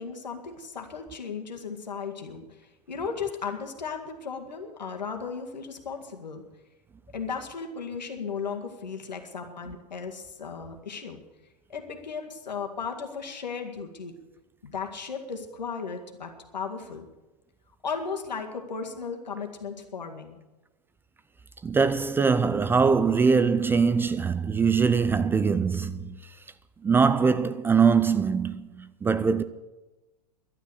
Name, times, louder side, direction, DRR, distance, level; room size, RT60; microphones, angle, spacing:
voice 1, 0.0-6.4 7.1-11.2 11.7-14.1 14.6-17.0 17.8-20.4, left 5 dB, 85° left, 2.0 m, -36 dB
voice 2, 21.6-26.2 26.8-29.4, right 5 dB, 10° right, 0.4 m, -22 dB
12.0 x 9.0 x 8.2 m
hypercardioid pair, 110°, 21 cm